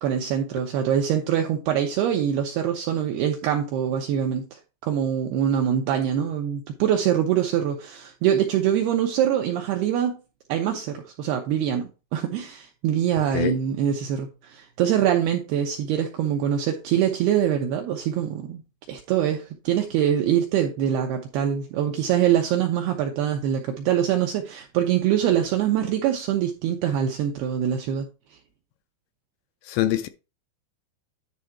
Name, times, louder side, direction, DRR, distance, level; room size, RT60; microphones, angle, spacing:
voice 1, 0.0-10.2 10.5-18.6 18.9-28.1, right 9 dB, 85° right, 2.3 m, -24 dB
voice 2, 29.7-30.1, left 14 dB, 85° left, 2.7 m, -24 dB
10.5 x 3.6 x 4.6 m
omnidirectional pair, 5.4 m